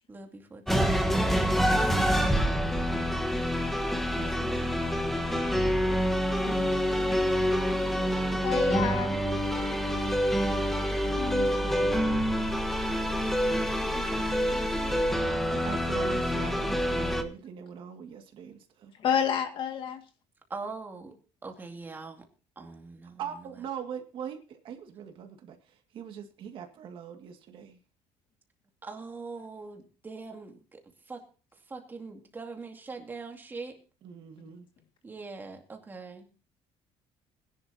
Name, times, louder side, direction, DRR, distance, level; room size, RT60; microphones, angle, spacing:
voice 1, 0.1-1.6 4.4-4.7 13.9-15.0 20.5-21.2 21.4-22.3 22.6-23.2 28.8-30.8 31.1-31.2 31.7-33.8 35.0-36.3, right 4 dB, 15° right, 4 dB, 2.3 m, -42 dB
sound 1, 0.7-17.2, equal, ahead, 1.2 m, -27 dB
voice 2, 2.9-3.4 4.2-5.1 11.3-12.3 15.6-18.9 23.2-27.8 34.0-34.7, right 7 dB, 50° right, 5 dB, 2.0 m, -42 dB
voice 3, 8.4-9.2 11.2-11.5 15.3-15.4 19.0-20.0, left 8 dB, 50° left, 6 dB, 2.0 m, -30 dB
20.5 x 11.0 x 2.8 m, 0.35 s
cardioid pair, 160°, 11 cm